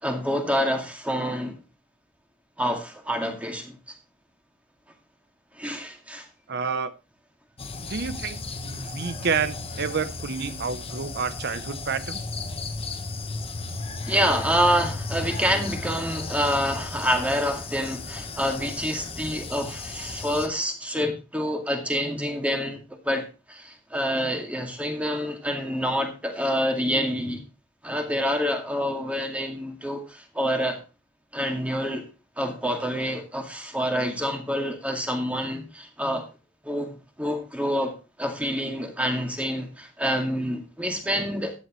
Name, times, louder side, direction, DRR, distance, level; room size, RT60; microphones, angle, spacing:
voice 1, 0.0-1.6 2.6-3.8 5.5-6.3 14.1-27.4 27.8-30.8 31.3-32.1 32.4-36.3 36.6-41.5, equal, 5° right, 3 dB, 2.2 m, -27 dB
voice 2, 6.5-6.9 7.8-12.2, right 5 dB, 55° right, 14 dB, 0.8 m, -29 dB
sound 1, 7.6-20.5, left 3 dB, 30° left, 1.2 m, -35 dB
14.5 x 9.7 x 3.1 m, 0.31 s
head